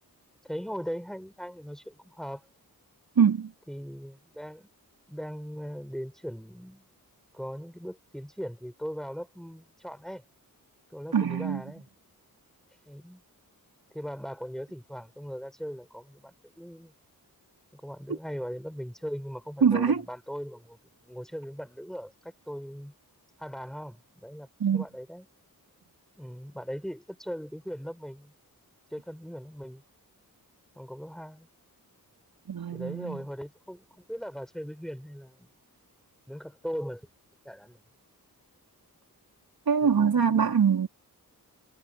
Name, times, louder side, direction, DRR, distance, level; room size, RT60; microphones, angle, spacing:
voice 1, 0.4-2.4 3.7-4.7 5.1-6.8 7.3-10.2 10.9-11.9 12.9-13.2 13.9-16.9 17.7-20.8 21.0-22.9 23.4-25.3 26.2-28.3 28.9-29.8 30.7-31.5 32.7-35.5 36.3-37.0 37.4-37.8 39.8-40.5, equal, ahead, 6.1 m, -39 dB
voice 2, 3.2-3.5 11.1-11.6 19.6-20.0 24.6-24.8 32.5-33.2 39.7-40.9, right 6 dB, 70° right, 3.3 m, -23 dB
wide cardioid pair, 95°, 37 cm